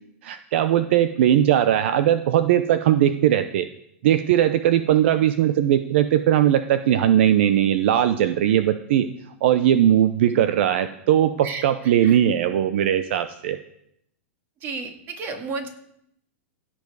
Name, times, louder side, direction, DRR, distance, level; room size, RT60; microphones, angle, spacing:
voice 1, 0.2-3.7 4.0-9.1 9.4-13.6, right 11 dB, 60° right, 11 dB, 0.6 m, -19 dB
voice 2, 11.4-12.2 14.6-15.7, right 4 dB, 30° right, 5 dB, 2.0 m, -33 dB
16.0 x 7.1 x 4.8 m, 0.75 s
hypercardioid pair, 145°, 7 cm